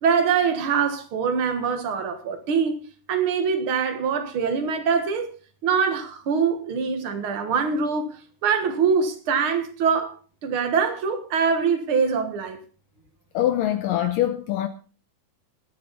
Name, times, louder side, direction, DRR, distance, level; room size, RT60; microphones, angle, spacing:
voice 1, 0.0-2.8 3.1-5.3 5.6-8.1 8.4-10.1 10.4-12.6, right 6 dB, 65° right, 1.3 m, -23 dB
voice 2, 13.3-14.7, left 12 dB, 75° left, 2.1 m, -23 dB
21.5 x 7.9 x 4.0 m
omnidirectional pair, 4.7 m